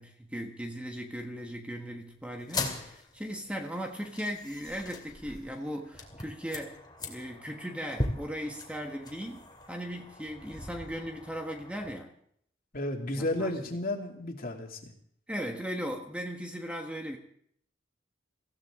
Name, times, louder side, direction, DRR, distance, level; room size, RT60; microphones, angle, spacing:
voice 1, 0.0-6.8 7.0-12.1 13.1-13.5 15.3-17.2, equal, 5° right, 3 dB, 1.5 m, -38 dB
sound 1, 2.4-12.0, left 2 dB, 20° left, 2.5 m, -40 dB
voice 2, 12.7-14.9, left 1 dB, 50° left, 2 dB, 2.7 m, -33 dB
24.0 x 16.0 x 3.8 m, 0.66 s
head